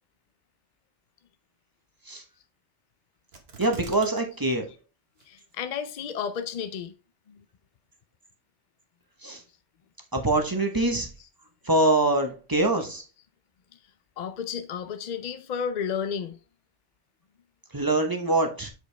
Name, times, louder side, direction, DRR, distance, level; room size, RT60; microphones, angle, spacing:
sound 1, 3.3-4.2 4.5-4.6 5.2-5.6 6.2-6.3, right 4 dB, 55° right, 1.4 m, -45 dB
voice 1, 3.6-4.7 9.2-9.4 10.1-11.1 11.6-13.0 17.7-18.7, right 2 dB, 20° right, 0.9 m, -24 dB
voice 2, 5.2-6.9 7.3-7.4 11.2-11.3 14.2-16.4, left 7 dB, 55° left, 0.5 m, -32 dB
6.4 x 5.1 x 3.3 m
omnidirectional pair, 1.2 m